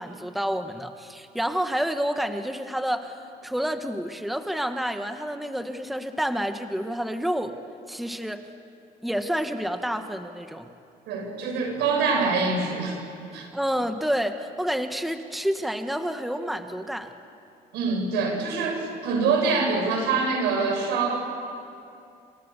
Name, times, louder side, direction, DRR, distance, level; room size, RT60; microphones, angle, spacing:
voice 1, 0.0-3.1 3.4-7.6 7.9-8.5 9.0-10.7 13.4-17.1, equal, ahead, 7 dB, 1.4 m, -29 dB
voice 2, 11.1-13.0 13.3-13.5 17.7-21.2, right 4 dB, 90° right, 2 dB, 6.8 m, -25 dB
27.5 x 27.0 x 7.0 m, 2.5 s
cardioid pair, 110°, 17 cm